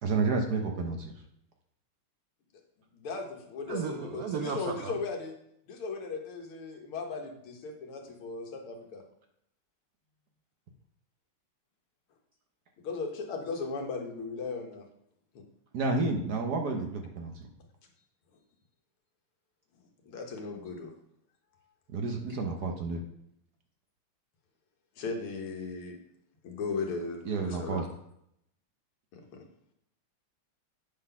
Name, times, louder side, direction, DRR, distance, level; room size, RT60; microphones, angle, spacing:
voice 1, 0.0-1.1 15.7-17.5 21.9-23.0 27.2-27.8, right 3 dB, 60° right, 3 dB, 1.2 m, -30 dB
voice 2, 2.9-5.3 5.7-9.0 12.8-14.9 20.0-20.9 25.0-26.0 26.4-27.9 29.1-29.4, left 4 dB, 85° left, 2 dB, 2.1 m, -37 dB
voice 3, 3.7-4.9, right 6 dB, 80° right, 4 dB, 0.8 m, -34 dB
8.5 x 4.0 x 5.5 m, 0.74 s
omnidirectional pair, 2.3 m